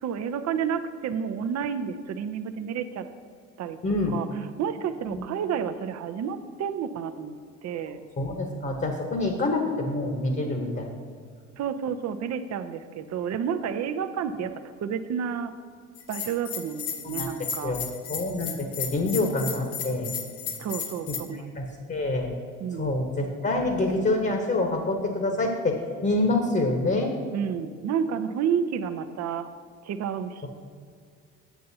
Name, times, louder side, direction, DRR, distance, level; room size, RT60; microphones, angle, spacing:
voice 1, 0.0-3.0 3.6-3.8 4.1-4.3 4.6-7.3 7.6-8.0 11.6-14.5 14.8-15.5 16.1-17.8 20.6-21.5 21.8-22.0 22.6-22.9 27.3-29.5 29.8-30.5, right 7 dB, 45° right, 10 dB, 0.6 m, -30 dB
voice 2, 3.8-4.2 5.1-5.2 8.2-10.9 17.0-17.3 17.6-20.2 21.1-21.2 21.5-22.3 22.8-27.2, left 2 dB, 30° left, 3 dB, 1.1 m, -26 dB
Bell, 15.9-21.2, left 7 dB, 75° left, 0.9 m, -34 dB
9.1 x 7.5 x 2.8 m, 2.1 s
hypercardioid pair, 60°, 37 cm